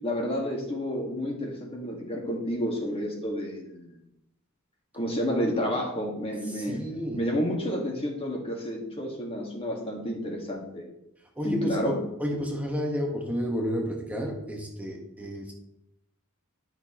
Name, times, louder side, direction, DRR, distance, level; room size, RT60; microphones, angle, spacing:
voice 1, 0.0-4.0 4.9-6.8 7.2-10.8 11.4-12.0, equal, 25° left, 0 dB, 1.8 m, -30 dB
voice 2, 6.5-7.3 11.4-15.5, equal, 5° right, 0 dB, 1.3 m, -31 dB
12.0 x 6.2 x 3.0 m, 0.83 s
head